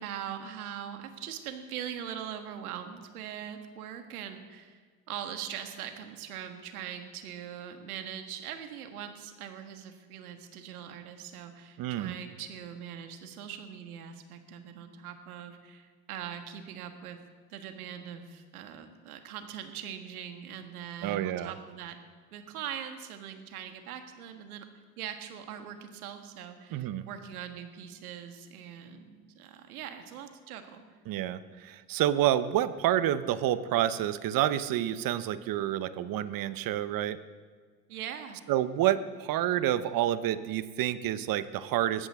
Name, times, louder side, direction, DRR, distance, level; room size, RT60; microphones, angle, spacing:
voice 1, 0.0-4.8 5.1-17.2 17.5-22.0 22.3-24.7 25.0-30.8 37.9-38.4, right 9 dB, 85° right, 6 dB, 1.7 m, -41 dB
voice 2, 11.8-12.1 21.0-21.5 26.7-27.1 31.1-37.2 38.5-42.1, right 12 dB, 50° right, 13 dB, 1.0 m, -28 dB
20.5 x 14.0 x 3.7 m, 1.5 s
hypercardioid pair, 80°, 43 cm